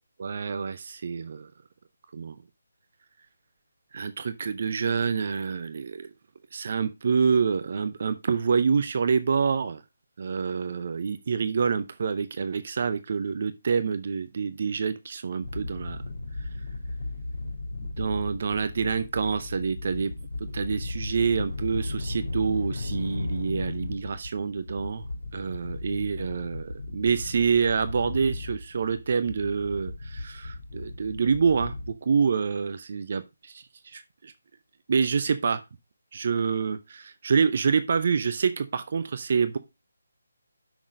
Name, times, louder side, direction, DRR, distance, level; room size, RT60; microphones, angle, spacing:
voice 1, 0.2-1.5 2.1-2.4 3.9-6.1 6.5-9.8 10.2-16.0 16.4-16.5 18.0-20.1 20.4-25.0 25.3-34.3 34.9-35.6 36.1-39.6, right 5 dB, 45° right, 0.7 m, -27 dB
sound 1, 15.4-31.9, left 2 dB, 65° left, 3.3 m, -35 dB
6.2 x 6.1 x 5.0 m
figure-of-eight pair, 150°, 0 cm